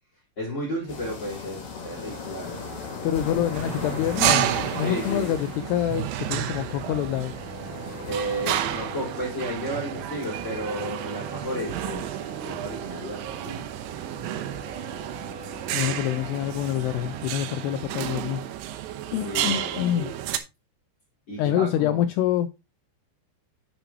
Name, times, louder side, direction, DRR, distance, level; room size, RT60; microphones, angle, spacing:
voice 1, 0.4-2.8 4.8-5.3 8.1-13.7 19.2-20.2 21.3-22.0, equal, 30° left, 4.9 m, -33 dB
sound 1, 0.9-8.6, left 4 dB, 50° left, 4.2 m, -37 dB
voice 2, 3.0-7.3 15.7-18.5 19.1-20.1 21.4-22.5, left 11 dB, 85° left, 2.3 m, -26 dB
sound 2, 3.5-20.4, right 12 dB, 85° right, 3.2 m, -31 dB
sound 3, 6.1-17.8, equal, 25° right, 5.0 m, -44 dB
10.0 x 7.7 x 3.0 m
omnidirectional pair, 5.3 m